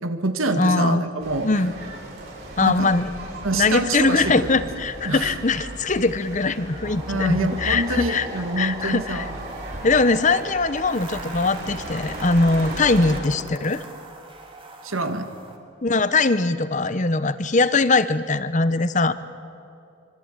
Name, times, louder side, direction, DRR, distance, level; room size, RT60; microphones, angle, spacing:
voice 1, 0.0-1.5 2.6-2.9 3.4-4.5 5.1-5.3 7.1-9.3 14.8-15.3, right 2 dB, 85° right, 7 dB, 2.2 m, -26 dB
voice 2, 0.5-1.0 1.4-1.7 2.6-3.1 3.5-8.3 8.6-9.3 9.8-13.8 15.8-19.1, left 3 dB, 35° left, 13 dB, 0.9 m, -21 dB
sound 1, 1.2-13.2, right 1 dB, 50° right, 7.0 m, -37 dB
sound 2, 6.8-15.6, right 2 dB, 25° right, 2.5 m, -40 dB
25.5 x 25.0 x 9.0 m, 2.8 s
head